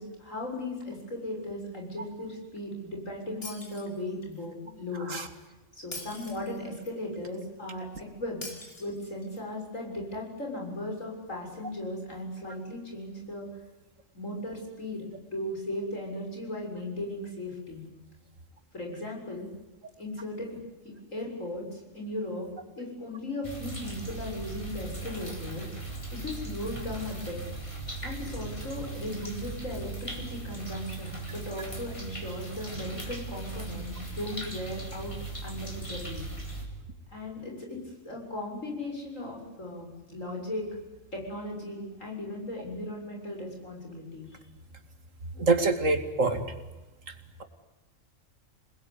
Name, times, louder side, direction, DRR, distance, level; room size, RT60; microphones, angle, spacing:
voice 1, 0.0-5.1 5.7-7.9 8.2-8.4 8.8-13.5 14.1-17.8 18.7-19.5 20.0-20.6 20.8-22.5 22.8-27.4 28.0-35.1 35.4-36.3 37.1-37.8 38.0-40.7 41.1-44.4, left 1 dB, 80° left, 0 dB, 7.3 m, -37 dB
Shatter, 3.4-4.4 5.9-6.9 8.4-9.4, left 1 dB, 50° left, 5.2 m, -43 dB
sound 1, 23.4-36.7, right 3 dB, 25° left, 4.4 m, -38 dB
voice 2, 45.4-46.4, right 3 dB, 80° right, 8 dB, 2.8 m, -25 dB
27.0 x 20.5 x 9.8 m, 1.1 s
omnidirectional pair, 1.3 m